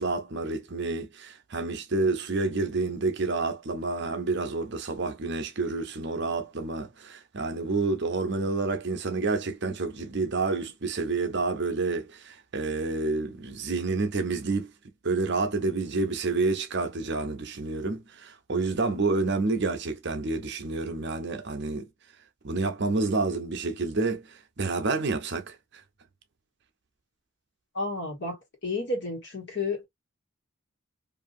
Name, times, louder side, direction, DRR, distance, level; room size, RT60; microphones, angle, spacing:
voice 1, 0.0-14.7 15.0-21.9 22.4-25.6, right 3 dB, 55° right, 0.7 m, -29 dB
voice 2, 27.7-29.8, left 3 dB, 55° left, 1.4 m, -31 dB
2.7 x 2.6 x 2.6 m
head